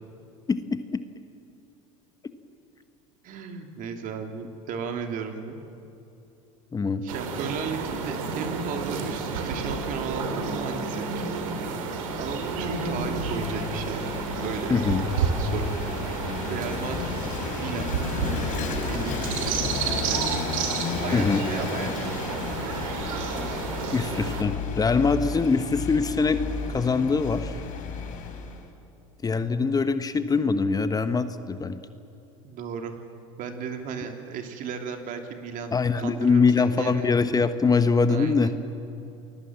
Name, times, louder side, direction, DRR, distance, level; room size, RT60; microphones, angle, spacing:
voice 1, 0.5-1.0 6.7-7.0 14.7-15.1 21.1-21.4 23.9-26.4 26.7-27.6 29.2-31.8 35.7-38.5, left 4 dB, 20° left, 11 dB, 1.2 m, -23 dB
voice 2, 3.2-5.6 7.0-11.3 12.2-14.1 14.4-14.7 15.2-15.7 16.5-17.3 17.5-17.9 18.8-20.4 21.0-22.1 32.4-33.0 33.4-37.1 38.1-38.6, right 6 dB, 50° right, 5 dB, 3.2 m, -35 dB
sound 1, 7.1-24.4, right 4 dB, 75° right, 3.3 m, -30 dB
Vehicle / Engine, 12.1-28.7, left 6 dB, 50° left, 4.0 m, -33 dB
29.5 x 21.5 x 7.6 m, 2.9 s
hypercardioid pair, 80°, 17 cm